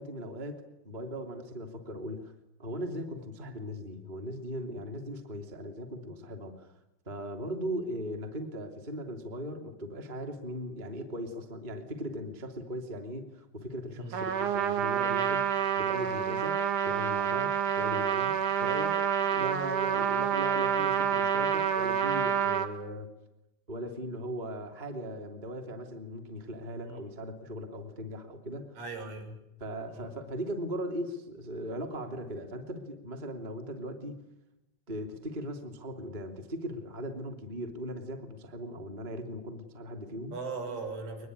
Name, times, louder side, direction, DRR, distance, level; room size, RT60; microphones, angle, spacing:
voice 1, 0.0-2.3 2.6-6.7 7.1-23.1 23.7-28.8 29.6-34.2 34.9-40.4, equal, 15° right, 4 dB, 1.8 m, -39 dB
voice 2, 13.9-14.3 26.8-27.0 28.7-29.4 29.9-30.1 40.3-41.3, right 3 dB, 75° right, 4 dB, 8.4 m, -39 dB
Trumpet, 14.1-22.7, right 8 dB, 55° right, 2.6 m, -28 dB
23.0 x 21.5 x 9.9 m, 0.88 s
omnidirectional pair, 5.7 m